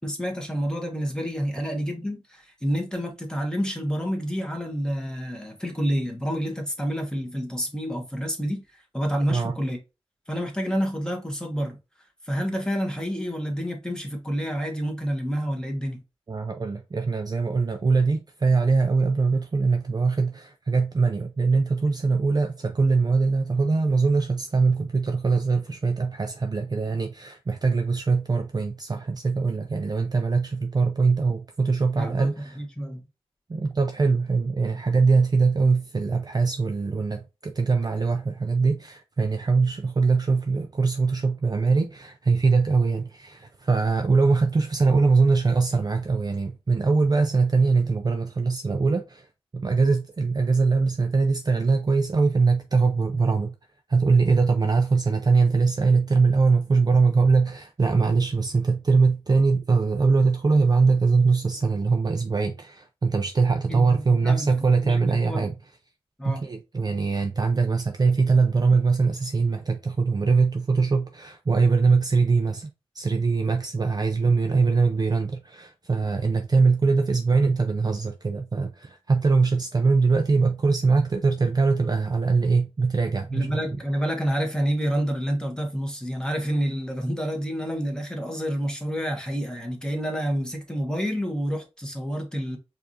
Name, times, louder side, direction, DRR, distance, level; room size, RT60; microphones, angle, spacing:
voice 1, 0.0-9.8 10.3-11.8 12.2-16.0 32.0-32.3 32.6-33.0 63.7-65.5 66.2-66.5 83.3-92.6, equal, 5° left, 1.2 m, -28 dB
voice 2, 16.3-32.6 33.5-49.3 49.5-53.5 53.9-65.5 66.2-83.6, right 4 dB, 35° right, 0.4 m, -22 dB
4.6 x 2.5 x 2.7 m
wide cardioid pair, 60°, 11 cm